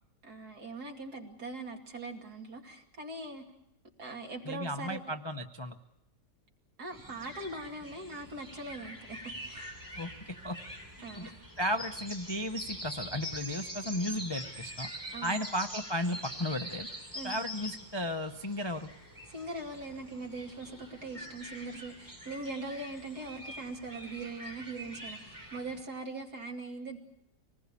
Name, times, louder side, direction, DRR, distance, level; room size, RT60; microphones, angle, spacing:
voice 1, 0.2-3.4 4.0-5.0 6.8-9.7 11.0-11.3 15.1-15.4 17.1-17.3 19.3-27.0, right 2 dB, 60° right, 1 dB, 3.0 m, -41 dB
voice 2, 4.5-5.8 10.0-10.6 11.2-11.3 11.6-14.9 15.2-16.9 17.2-18.9, equal, 30° left, 6 dB, 0.5 m, -34 dB
sound 1, 6.9-25.8, equal, 10° right, 5.4 m, -44 dB
25.0 x 19.5 x 8.3 m, 0.81 s
omnidirectional pair, 1.9 m